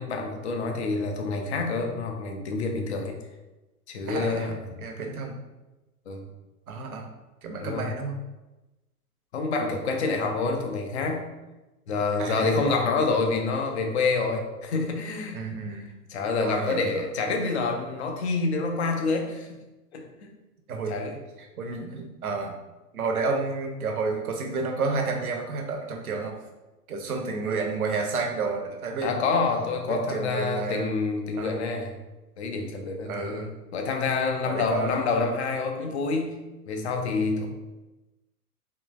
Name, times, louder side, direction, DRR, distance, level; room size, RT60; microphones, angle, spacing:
voice 1, 0.0-3.2 3.9-4.8 6.1-6.3 7.6-8.0 9.3-11.3 11.9-15.4 15.8-15.9 16.1-19.5 19.9-20.3 20.9-21.2 29.0-32.0 32.4-36.4 36.7-37.5, left 3 dB, 45° left, 3 dB, 0.7 m, -27 dB
voice 2, 4.1-4.5 4.8-5.4 6.7-7.1 7.4-8.2 12.2-12.8 15.3-15.9 16.4-17.0 20.7-21.0 21.6-22.5 22.9-26.3 26.9-29.2 29.9-31.0 31.4-31.6 33.1-33.5 34.4-35.0, right 4 dB, 65° right, 2 dB, 0.9 m, -30 dB
3.8 x 3.0 x 2.5 m, 1.1 s
figure-of-eight pair, 105°, 47 cm